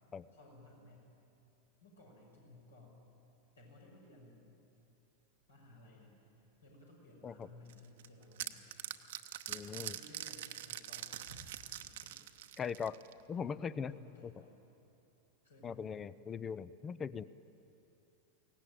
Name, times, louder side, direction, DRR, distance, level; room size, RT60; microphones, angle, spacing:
voice 1, 0.3-1.1 1.8-3.0 3.5-4.5 5.5-8.8 9.9-11.5 12.0-12.7 13.3-14.6 15.4-15.8, left 1 dB, 70° left, -2 dB, 6.7 m, -58 dB
sound 1, 7.7-13.2, right 13 dB, 55° right, 0.9 m, -44 dB
voice 2, 9.5-9.9 12.6-13.0 13.3-13.9 14.2-14.3 15.6-17.2, left 6 dB, 20° left, 18 dB, 0.5 m, -40 dB
22.5 x 18.0 x 9.2 m, 2.8 s
figure-of-eight pair, 90°, 0 cm